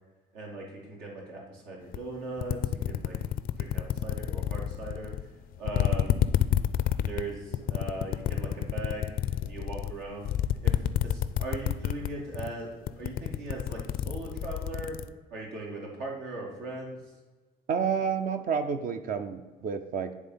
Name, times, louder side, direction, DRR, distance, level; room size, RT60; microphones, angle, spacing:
voice 1, 0.3-2.6 2.9-3.2 3.6-5.1 5.6-6.2 7.1-9.1 9.4-10.2 10.6-10.7 11.0-12.7 13.0-13.8 14.1-15.0 15.3-17.0, right 2 dB, 85° right, -2 dB, 2.1 m, -39 dB
sound 1, 1.9-2.0 2.4-5.3 5.6-12.1 12.3-12.6 12.9-15.1, left 12 dB, 60° left, 0.4 m, -28 dB
voice 2, 17.7-20.1, right 6 dB, 55° right, 8 dB, 0.6 m, -30 dB
9.8 x 3.5 x 5.5 m, 1.3 s
cardioid pair, 110°, 17 cm